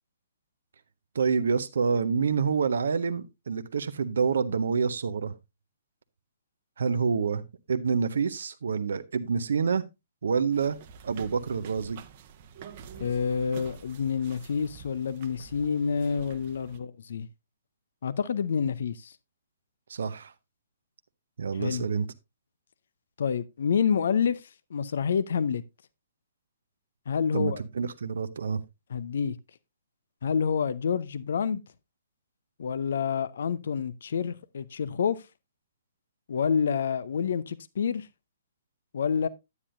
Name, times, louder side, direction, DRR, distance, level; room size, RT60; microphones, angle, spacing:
voice 1, 1.1-5.3 6.8-9.8 10.2-10.8 11.0-12.0 19.9-20.3 21.4-22.1 27.3-28.6, right 5 dB, 65° right, 0.6 m, -27 dB
sound 1, 10.5-16.8, right 7 dB, 40° right, 0.9 m, -47 dB
voice 2, 13.0-17.3 18.0-19.1 21.6-21.8 23.2-24.4 24.7-25.6 27.1-27.6 28.9-29.4 30.2-31.6 32.6-35.2 36.3-38.1 38.9-39.3, left 6 dB, 60° left, 0.6 m, -28 dB
9.8 x 9.5 x 2.6 m
figure-of-eight pair, 120°, 0 cm